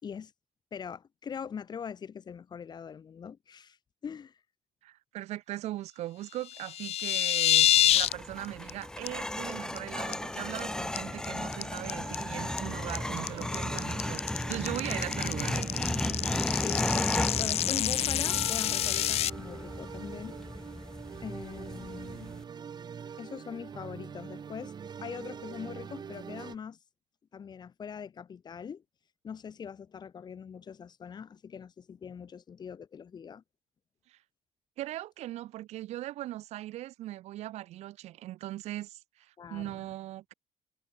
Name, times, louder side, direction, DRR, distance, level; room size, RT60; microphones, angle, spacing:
voice 1, 0.7-3.8 4.0-4.4 16.6-20.4 20.6-20.7 21.2-22.3 23.2-24.7 25.0-26.8 27.3-28.8 29.2-33.4 39.4-39.8, left 7 dB, 40° left, 6.8 m, -42 dB
voice 2, 4.8-7.7 7.9-15.7 34.1-34.2 34.8-40.3, right 15 dB, 75° right, 1.5 m, -39 dB
sound 1, 6.5-8.1 8.4-8.7 9.1-9.2 9.5-9.8 10.1-10.6 11.0-19.3, left 12 dB, 65° left, 1.4 m, -27 dB
sound 2, 7.6-22.4, left 1 dB, 5° left, 0.5 m, -35 dB
sound 3, 8.1-26.5, right 7 dB, 40° right, 7.2 m, -44 dB
cardioid pair, 130°, 11 cm